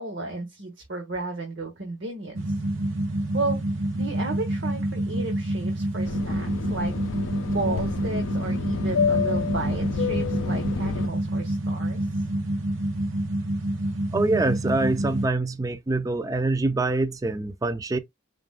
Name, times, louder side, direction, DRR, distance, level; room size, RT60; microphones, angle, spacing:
voice 1, 0.0-2.4 3.3-3.6 3.9-6.9 7.4-12.2, right 2 dB, 65° right, 1.2 m, -33 dB
sound 1, 2.3-15.3, right 1 dB, 80° right, 0.9 m, -28 dB
Fixed-wing aircraft airplane, 6.0-11.1, left 6 dB, 85° left, 0.4 m, -29 dB
voice 2, 14.1-18.0, right 2 dB, 20° right, 0.3 m, -25 dB
4.8 x 2.1 x 3.6 m
head